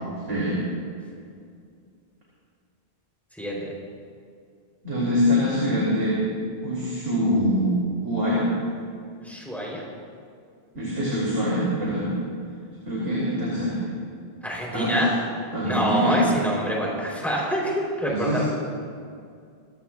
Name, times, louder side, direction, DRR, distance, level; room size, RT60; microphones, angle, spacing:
voice 1, 0.3-0.6 4.8-6.2 6.6-7.7 8.0-8.5 10.7-12.1 12.8-13.8 14.7-15.0 15.5-16.2 18.1-18.4, equal, 75° right, -7 dB, 3.4 m, -24 dB
voice 2, 3.4-3.7 9.2-9.8 14.4-15.1 15.6-18.4, equal, ahead, -4 dB, 3.9 m, -26 dB
24.5 x 14.0 x 2.5 m, 2.3 s
omnidirectional pair, 1.1 m